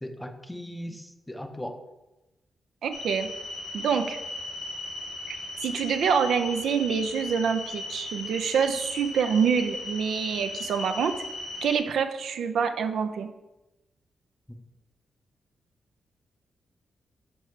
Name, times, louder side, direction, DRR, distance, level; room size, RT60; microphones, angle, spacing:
voice 1, 0.0-1.8 14.5-14.6, equal, 10° left, 6 dB, 0.6 m, -38 dB
voice 2, 2.8-3.3 3.7-4.2 5.3-5.4 5.6-11.2 11.6-13.3, right 6 dB, 85° right, 7 dB, 0.4 m, -26 dB
sound 1, 2.9-11.8, left 2 dB, 75° left, 1.3 m, -37 dB
6.4 x 4.6 x 3.2 m, 1.0 s
cardioid pair, 100°, 0 cm